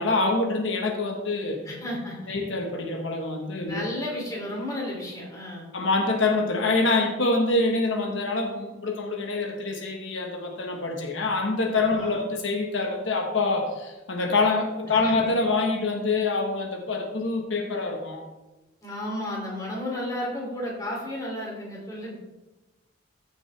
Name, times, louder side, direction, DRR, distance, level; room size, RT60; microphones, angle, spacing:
voice 1, 0.0-1.6 2.3-3.9 5.7-18.3, left 3 dB, 80° left, 2 dB, 1.2 m, -25 dB
voice 2, 1.6-2.4 3.7-5.7 11.8-12.2 14.9-15.1 18.8-22.2, left 1 dB, 20° left, -3 dB, 2.7 m, -33 dB
14.5 x 6.2 x 3.3 m, 1.0 s
head